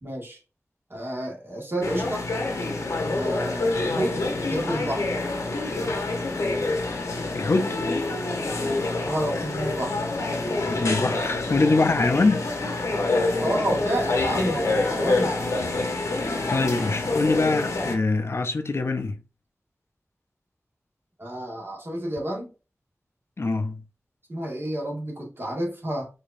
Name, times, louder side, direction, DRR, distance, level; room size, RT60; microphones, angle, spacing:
voice 1, 0.0-0.4 0.9-2.3 3.1-4.2 4.5-5.1 9.0-10.0 13.4-15.4 21.2-22.5 24.3-26.1, right 1 dB, 45° right, 1.6 m, -30 dB
sound 1, 1.8-17.9, left 2 dB, 90° left, 0.8 m, -27 dB
voice 2, 7.3-7.8 10.7-12.6 15.9-19.2 23.4-23.8, left 3 dB, 55° left, 0.5 m, -24 dB
4.7 x 2.7 x 2.5 m
wide cardioid pair, 55°, 5 cm